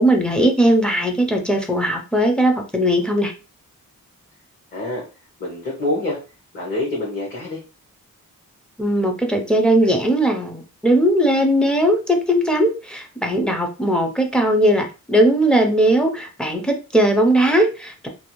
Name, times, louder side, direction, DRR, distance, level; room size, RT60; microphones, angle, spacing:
voice 1, 0.0-3.3 8.8-18.1, right 1 dB, 5° left, 2 dB, 0.5 m, -18 dB
voice 2, 4.7-5.0 5.4-6.2 6.5-7.6, left 1 dB, 35° left, -4 dB, 0.9 m, -26 dB
2.6 x 2.4 x 2.9 m, 0.32 s
wide cardioid pair, 155°, 33 cm